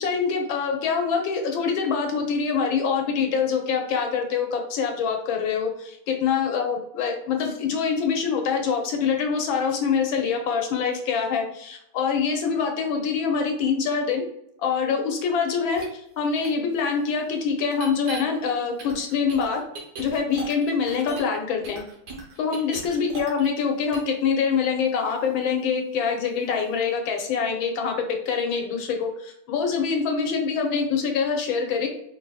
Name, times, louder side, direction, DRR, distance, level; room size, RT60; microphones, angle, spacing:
voice 1, 0.0-14.3 14.6-19.6 20.0-21.8 22.4-27.9 28.3-31.9, left 6 dB, 70° left, 3 dB, 1.6 m, -25 dB
sound 1, 15.7-15.8 16.4-16.5 17.7-18.2 18.8-21.4 21.6-23.6 23.9-24.1, right 3 dB, 55° right, 1.6 m, -38 dB
4.9 x 4.1 x 2.2 m, 0.76 s
omnidirectional pair, 2.3 m